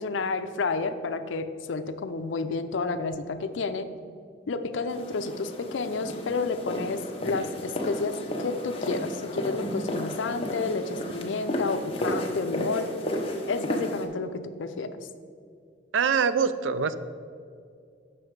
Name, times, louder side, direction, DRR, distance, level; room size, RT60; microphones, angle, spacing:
voice 1, 0.0-3.9 4.5-12.9 13.5-15.0, left 4 dB, 80° left, 9 dB, 0.5 m, -30 dB
sound 1, 4.9-14.1, left 1 dB, 30° left, 0.8 m, -33 dB
voice 2, 15.9-17.0, right 6 dB, 80° right, 13 dB, 0.4 m, -24 dB
7.8 x 6.2 x 4.7 m, 2.4 s
head